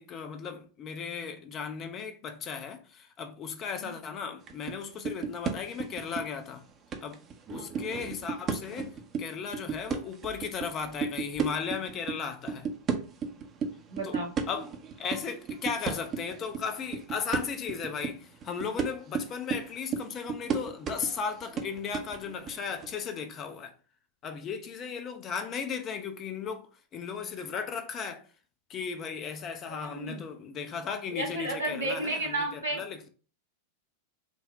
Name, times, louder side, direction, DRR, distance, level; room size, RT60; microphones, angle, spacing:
voice 1, 0.0-6.6 7.0-7.2 7.5-12.7 14.0-14.2 14.5-23.7 24.2-28.3 28.7-33.1, left 6 dB, 30° left, 0.5 m, -36 dB
sound 1, 4.5-4.8 5.0-6.5 6.9-12.2 12.5-22.9, right 5 dB, 30° right, 0.6 m, -34 dB
voice 2, 13.9-14.3 29.8-30.2 31.1-32.8, right 1 dB, 80° right, 1.8 m, -32 dB
4.0 x 2.1 x 3.5 m
figure-of-eight pair, 90°, 0 cm